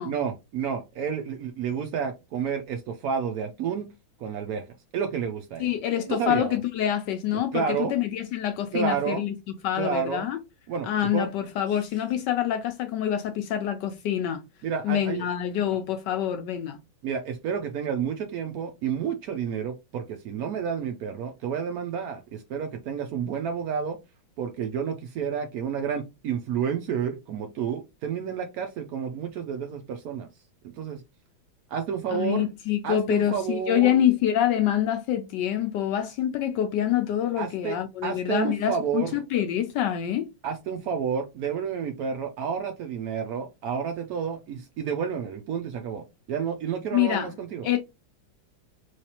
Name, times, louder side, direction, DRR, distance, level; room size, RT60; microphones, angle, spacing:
voice 1, 0.0-3.9 4.2-4.6 4.9-5.7 6.1-6.6 7.3-7.9 8.7-9.2 9.8-10.3 10.7-11.3 14.6-15.3 17.0-24.0 24.4-30.3 30.8-31.0 31.7-32.5 32.8-34.0 37.4-39.1 40.4-47.7, right 7 dB, 85° right, 0.8 m, -30 dB
voice 2, 5.6-9.3 9.6-10.4 10.8-14.4 14.8-16.8 32.1-40.3 46.9-47.3 47.6-47.8, left 11 dB, 75° left, 1.1 m, -26 dB
3.3 x 3.2 x 2.8 m
omnidirectional pair, 2.2 m